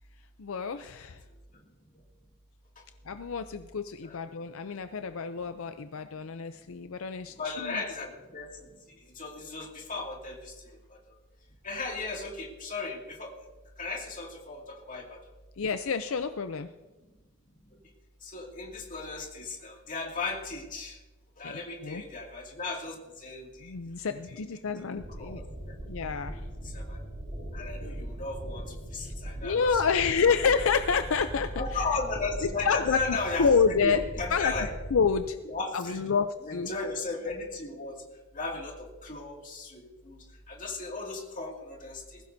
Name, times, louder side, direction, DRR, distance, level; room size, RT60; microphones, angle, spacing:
voice 1, 0.4-1.2 3.1-7.8 15.6-16.7 21.4-22.0 23.6-25.4 25.9-26.4 29.0-29.1 29.4-31.8 32.6-34.0 34.3-34.5 34.9-35.4 35.7-36.7, left 5 dB, 70° left, 9 dB, 0.5 m, -28 dB
voice 2, 7.4-8.6 9.2-11.0 11.6-13.3 13.8-15.2 18.2-21.0 21.4-23.7 25.2-25.7 26.3-27.0 27.5-30.0 31.6-34.7 35.4-38.0 38.3-42.2, left 3 dB, 40° left, 0 dB, 2.3 m, -36 dB
sound 1, 24.9-35.2, equal, 30° right, 4.8 m, -39 dB
20.0 x 16.0 x 2.7 m, 1.1 s
head